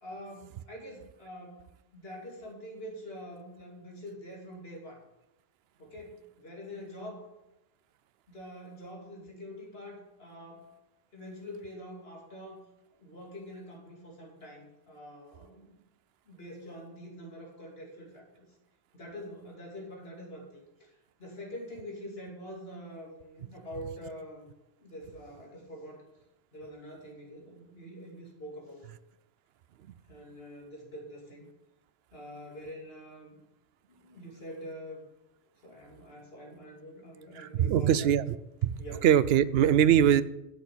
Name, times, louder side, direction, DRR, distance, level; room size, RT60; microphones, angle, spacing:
voice 1, 0.0-1.7 1.9-5.1 5.8-7.3 8.3-10.7 11.1-12.6 13.0-15.8 16.3-18.5 18.9-20.9 21.2-24.5 24.8-26.1 26.5-28.9 30.1-31.5 32.1-33.4 33.9-35.0 35.6-38.1 38.8-39.0, equal, 70° left, -1 dB, 2.8 m, -45 dB
voice 2, 37.6-38.2 38.6-38.7 39.0-40.2, right 10 dB, 75° right, 16 dB, 0.8 m, -21 dB
8.0 x 6.7 x 8.4 m, 0.92 s
omnidirectional pair, 1.0 m